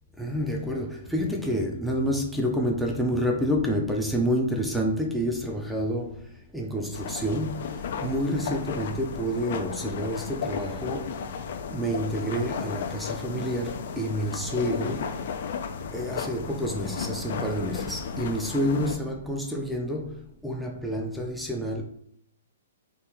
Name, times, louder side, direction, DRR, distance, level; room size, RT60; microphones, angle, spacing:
voice 1, 0.2-7.7 8.0-11.2 11.7-15.2 15.9-21.8, equal, ahead, 0.6 m, -28 dB
sound 1, 6.9-19.0, left 6 dB, 60° left, 0.6 m, -34 dB
3.7 x 2.5 x 4.4 m
hypercardioid pair, 145°, 0 cm